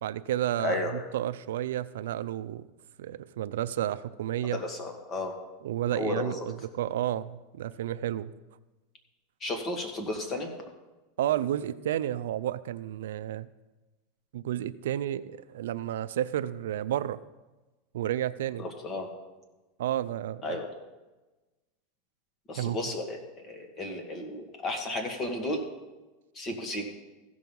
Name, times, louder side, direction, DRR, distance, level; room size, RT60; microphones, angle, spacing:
voice 1, 0.0-2.7 3.0-4.6 5.6-8.3 11.2-13.5 14.3-17.2 17.9-18.7 19.8-20.6 22.6-22.8, right 12 dB, 90° right, 14 dB, 0.4 m, -31 dB
voice 2, 0.6-1.1 4.5-5.3 5.9-6.4 9.4-10.5 18.6-19.1 20.4-20.7 22.5-25.6 26.3-26.9, left 2 dB, 25° left, 4 dB, 1.7 m, -33 dB
15.5 x 6.2 x 5.3 m, 1.1 s
supercardioid pair, 145°, 0 cm